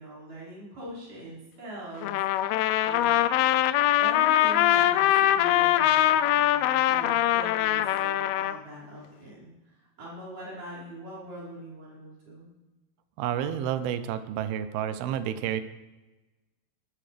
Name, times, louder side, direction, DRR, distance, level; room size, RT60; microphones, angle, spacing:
voice 1, 0.0-3.6 3.9-12.5, right 1 dB, 55° right, -6 dB, 7.0 m, -42 dB
Trumpet, 2.0-8.6, left 13 dB, 85° left, 2.5 m, -23 dB
voice 2, 13.2-15.6, right 10 dB, 85° right, 11 dB, 2.7 m, -30 dB
19.5 x 14.0 x 3.4 m, 1.1 s
omnidirectional pair, 4.4 m